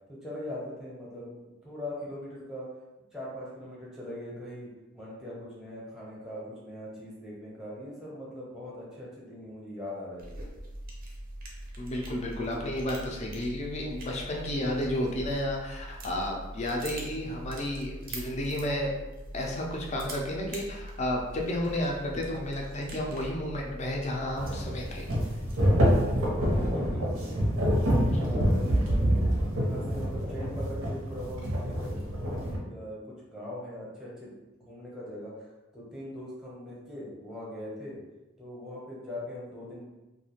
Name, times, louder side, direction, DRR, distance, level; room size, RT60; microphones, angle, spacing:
voice 1, 0.1-1.4 1.6-2.7 3.1-10.4 26.5-29.2 29.6-38.0 38.4-39.8, left 1 dB, ahead, -7 dB, 0.7 m, -41 dB
sound 1, 10.2-26.6, right 1 dB, 45° right, 0.5 m, -42 dB
voice 2, 11.8-18.9 19.3-25.1, left 1 dB, 35° left, 0 dB, 0.4 m, -32 dB
sound 2, 24.4-32.6, equal, 90° right, 0.7 m, -26 dB
2.4 x 2.2 x 2.9 m, 1.0 s
head